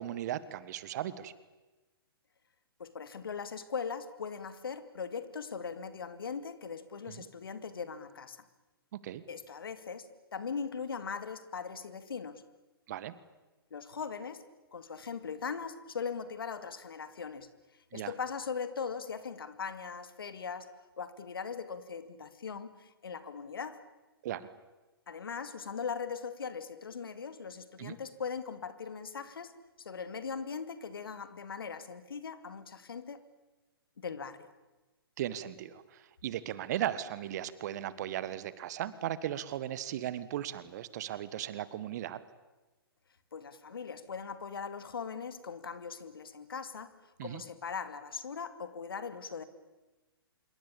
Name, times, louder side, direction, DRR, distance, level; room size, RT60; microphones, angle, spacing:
voice 1, 0.0-1.3 7.1-7.2 9.0-9.2 12.9-13.1 17.9-18.1 24.2-24.5 27.8-27.9 35.2-42.2 47.2-47.4, right 12 dB, 45° right, 16 dB, 1.6 m, -37 dB
voice 2, 2.8-8.4 9.3-12.4 13.7-14.4 14.7-17.5 17.9-20.7 21.0-23.8 25.1-29.5 29.8-33.2 34.0-34.5 43.3-47.0 47.2-49.4, left 6 dB, 65° left, 12 dB, 2.4 m, -40 dB
26.5 x 23.0 x 8.7 m, 1.1 s
figure-of-eight pair, 120°, 13 cm